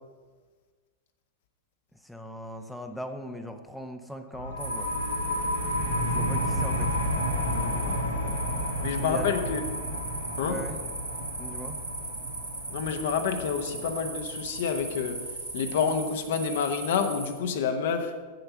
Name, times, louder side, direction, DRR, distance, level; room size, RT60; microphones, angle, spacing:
voice 1, 2.0-4.9 6.0-6.9 8.9-9.4 10.4-10.8 11.4-11.8, equal, ahead, 5 dB, 0.7 m, -39 dB
sound 1, 4.3-15.7, left 1 dB, 80° left, 1.9 m, -31 dB
sound 2, 4.6-17.3, right 2 dB, 85° right, 3.2 m, -38 dB
voice 2, 7.5-8.4 8.8-9.6 10.4-10.6 12.7-15.3 15.5-18.1, left 6 dB, 55° left, 6 dB, 0.9 m, -29 dB
7.9 x 7.8 x 5.7 m, 1.4 s
figure-of-eight pair, 90°, 0 cm